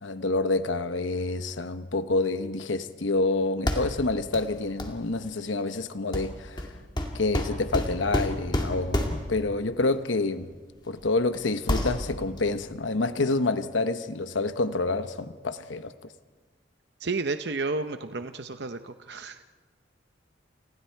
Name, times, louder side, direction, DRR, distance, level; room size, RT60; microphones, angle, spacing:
voice 1, 0.0-6.7 7.1-10.5 10.9-15.9, left 3 dB, 75° left, 11 dB, 0.9 m, -28 dB
sound 1, 3.7-4.1 4.3-4.5 4.8-5.0 6.1-9.4 10.5-10.6 11.1-11.4 11.6-12.4, left 1 dB, 25° left, 2.2 m, -29 dB
voice 2, 17.0-19.4, right 3 dB, 60° right, 9 dB, 0.7 m, -32 dB
30.0 x 28.5 x 4.6 m, 1.4 s
head